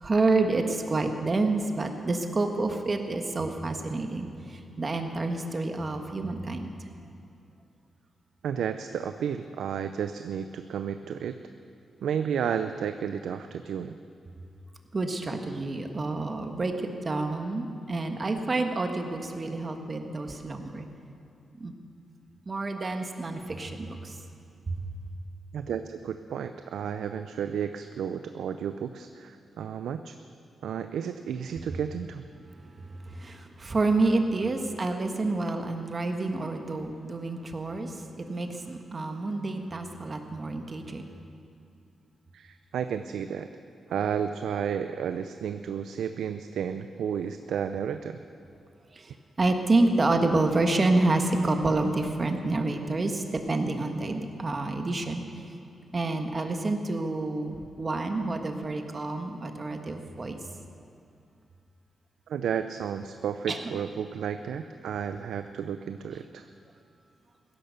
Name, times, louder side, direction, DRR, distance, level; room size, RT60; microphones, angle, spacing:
voice 1, 0.0-6.7 14.9-20.9 21.6-21.7 22.5-24.1 33.1-41.0 49.0-49.1 49.4-55.2 55.9-60.4 63.5-63.6, right 2 dB, 35° right, 5 dB, 1.4 m, -28 dB
voice 2, 8.4-11.4 12.0-14.0 25.5-30.2 30.6-32.3 42.3-43.5 43.9-48.2 62.3-66.5, right 8 dB, 85° right, 9 dB, 0.4 m, -32 dB
16.0 x 11.0 x 6.7 m, 2.6 s
cardioid pair, 95°, 0 cm